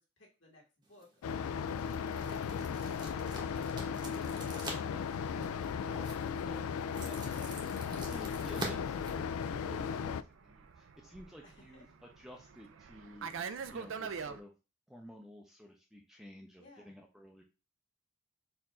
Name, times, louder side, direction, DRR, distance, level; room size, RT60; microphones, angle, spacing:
voice 1, 0.0-4.1 11.4-11.9 16.6-17.0, left 2 dB, 55° left, -2 dB, 1.7 m, -63 dB
sound 1, 0.8-9.9, right 2 dB, 20° right, 0.9 m, -47 dB
sound 2, 1.2-10.2, left 6 dB, 90° left, 0.3 m, -36 dB
voice 2, 4.9-6.1 6.4-10.2 10.4-11.8 12.2-13.3 13.7-14.5 14.9-17.4, equal, ahead, 2 dB, 0.5 m, -52 dB
Fixed-wing aircraft airplane, 7.9-14.4, right 6 dB, 60° right, 0.4 m, -45 dB
4.3 x 2.5 x 4.2 m, 0.30 s
head